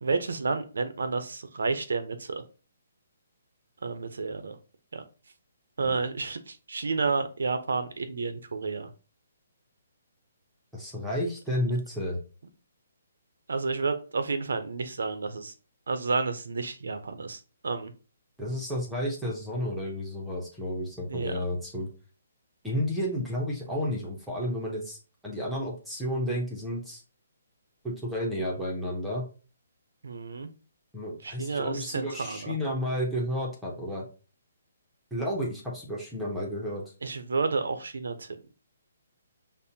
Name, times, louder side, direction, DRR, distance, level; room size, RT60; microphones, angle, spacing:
voice 1, 0.0-2.4 3.8-4.6 4.9-5.0 5.8-8.9 13.5-15.5 15.9-17.9 21.1-21.4 30.0-30.5 31.2-32.6 37.0-38.4, right 4 dB, 90° right, 9 dB, 0.6 m, -31 dB
voice 2, 10.7-12.2 18.4-21.9 22.6-25.0 25.2-27.0 27.8-29.2 30.9-34.1 35.1-36.8, equal, ahead, -4 dB, 0.6 m, -31 dB
5.3 x 2.1 x 2.7 m, 0.35 s
hypercardioid pair, 170°, 0 cm